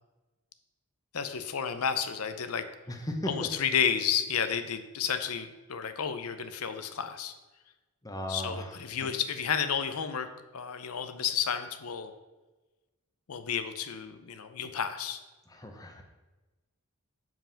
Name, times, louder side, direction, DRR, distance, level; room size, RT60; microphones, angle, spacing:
voice 1, 1.1-2.7 3.2-7.3 8.3-10.3 10.5-12.1 13.3-15.2, left 7 dB, 85° left, 10 dB, 0.6 m, -31 dB
voice 2, 2.9-3.5 8.0-8.7 15.5-16.0, left 1 dB, 15° left, 4 dB, 0.9 m, -36 dB
7.6 x 5.6 x 5.7 m, 1.2 s
head